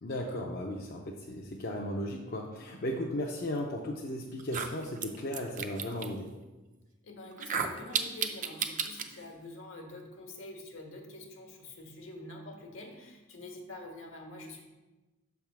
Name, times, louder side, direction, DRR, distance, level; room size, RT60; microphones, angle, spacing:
voice 1, 0.0-6.3, left 1 dB, 50° left, -1 dB, 0.6 m, -36 dB
sound 1, 3.8-3.9 4.4-6.1 7.3-9.1, right 6 dB, 40° right, 0.5 m, -33 dB
voice 2, 7.0-14.6, left 2 dB, 70° left, 2 dB, 1.3 m, -46 dB
6.3 x 3.5 x 5.9 m, 1.1 s
head